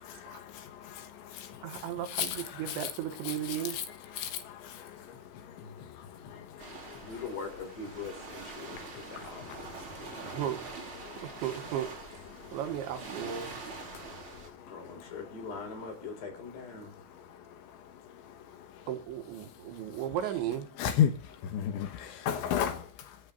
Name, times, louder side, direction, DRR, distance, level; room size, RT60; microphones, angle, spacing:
voice 1, 0.2-1.8 2.1-2.4 2.7-2.9 3.3-3.8 4.1-5.2 5.6-7.1 8.7-9.0 9.5-9.6 10.0-10.4 11.0-11.3 12.4-12.6 14.1-14.2 14.5-14.6 20.8-21.1 21.4-22.9, left 9 dB, 75° left, 3.5 m, -34 dB
voice 2, 1.6-3.8 10.3-10.6 11.2-11.9 12.5-13.6 18.9-20.7, right 10 dB, 70° right, 3.6 m, -35 dB
sound 1, 6.6-14.5, right 4 dB, 25° right, 4.6 m, -45 dB
voice 3, 7.0-9.8 14.6-17.0, left 4 dB, 55° left, 6.6 m, -42 dB
27.0 x 10.5 x 2.6 m
omnidirectional pair, 5.7 m